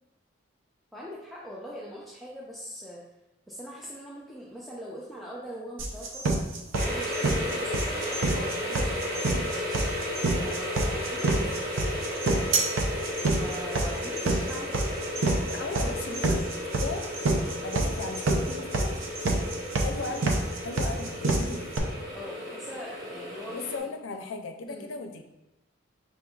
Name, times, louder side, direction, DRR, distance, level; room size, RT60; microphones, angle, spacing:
voice 1, 0.9-3.0 3.5-6.2 6.7-11.6 13.3-15.0 15.4-15.5 15.8-16.5 20.0-20.1 22.1-23.9 24.7-24.9, equal, ahead, -6 dB, 0.4 m, -42 dB
sound 1, 5.8-21.8, right 2 dB, 85° right, 0.6 m, -27 dB
sound 2, 6.7-23.8, left 1 dB, 45° right, 1.2 m, -34 dB
voice 2, 15.5-16.5 16.7-17.1 17.6-19.0 19.8-21.7 23.5-25.2, left 4 dB, 75° left, 5 dB, 0.5 m, -37 dB
5.2 x 3.5 x 2.3 m, 0.93 s
head